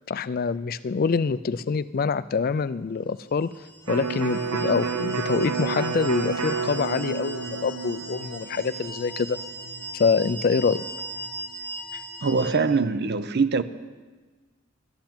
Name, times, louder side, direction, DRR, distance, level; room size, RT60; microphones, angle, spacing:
voice 1, 0.1-3.5 3.9-9.4 9.9-10.8, left 5 dB, 45° left, 0.3 m, -25 dB
sound 1, 3.5-12.5, right 1 dB, 10° left, 1.4 m, -39 dB
Electric guitar, 3.9-11.5, right 5 dB, 85° right, 0.7 m, -31 dB
voice 2, 12.2-13.6, right 4 dB, 50° right, 0.6 m, -23 dB
12.0 x 8.0 x 8.7 m
head